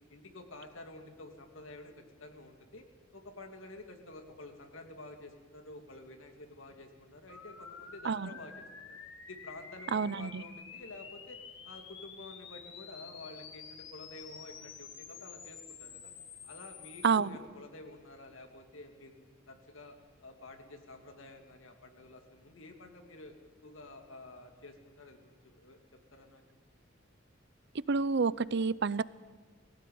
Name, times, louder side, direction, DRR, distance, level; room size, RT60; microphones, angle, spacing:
voice 1, 0.1-2.8 3.1-11.4 11.6-16.1 16.4-19.9 20.2-23.4 23.6-25.8 26.1-26.4, left 2 dB, 90° left, 5 dB, 2.7 m, -50 dB
sound 1, 7.3-17.2, left 6 dB, 65° left, 2.4 m, -49 dB
voice 2, 9.9-10.4 17.0-17.4 27.7-29.0, right 5 dB, 60° right, 19 dB, 0.6 m, -29 dB
19.5 x 17.0 x 9.4 m, 1.3 s
head